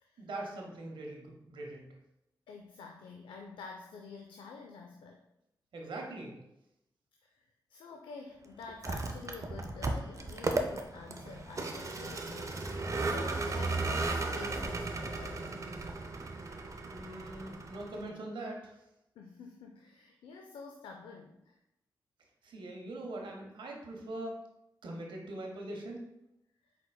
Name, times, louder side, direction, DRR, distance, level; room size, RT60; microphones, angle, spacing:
voice 1, 0.2-1.9 5.7-6.3 16.9-18.8 22.4-24.4 24.8-26.0, right 1 dB, 80° right, 1 dB, 0.8 m, -42 dB
voice 2, 2.5-5.2 7.2-15.6 16.6-16.7 19.2-21.6 26.7-26.8, left 4 dB, 90° left, 2 dB, 0.4 m, -49 dB
Vehicle, 8.7-18.1, right 3 dB, 40° right, 0.5 m, -35 dB
4.3 x 4.0 x 2.2 m, 0.86 s
cardioid pair, 45°, 8 cm